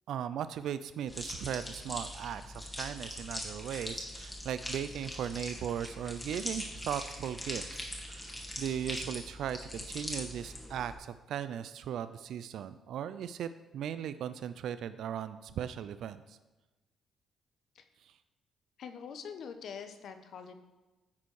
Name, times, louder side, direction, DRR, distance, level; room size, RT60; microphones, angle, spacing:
voice 1, 0.1-16.4, right 9 dB, 75° right, 13 dB, 0.3 m, -38 dB
sound 1, 1.1-10.9, left 1 dB, 15° left, 1.7 m, -41 dB
voice 2, 18.8-20.6, left 6 dB, 65° left, 8 dB, 0.7 m, -44 dB
9.5 x 4.4 x 4.7 m, 1.1 s
cardioid pair, 90°, 0 cm